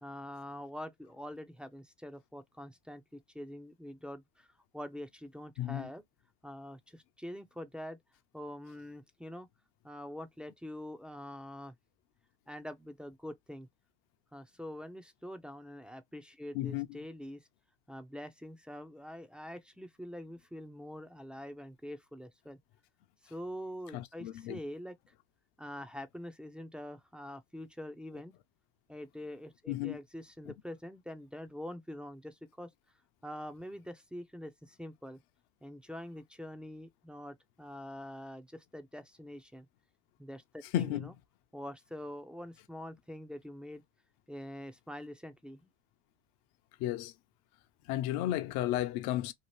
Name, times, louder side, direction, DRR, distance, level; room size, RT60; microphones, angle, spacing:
voice 1, 0.0-6.0 6.4-8.0 8.3-9.5 9.8-11.7 12.5-13.7 14.3-17.5 17.9-22.6 23.2-25.1 25.6-28.3 28.9-32.7 33.2-35.2 35.6-39.7 40.2-41.1 41.5-43.8 44.3-45.7, left 1 dB, 5° right, 0.4 m, -45 dB
voice 2, 5.6-5.9 16.5-16.9 23.9-24.6 29.7-30.0 40.7-41.1 46.8-47.1 47.9-49.3, left 13 dB, 65° left, 0.6 m, -33 dB
2.9 x 2.5 x 3.1 m
supercardioid pair, 100°, 41 cm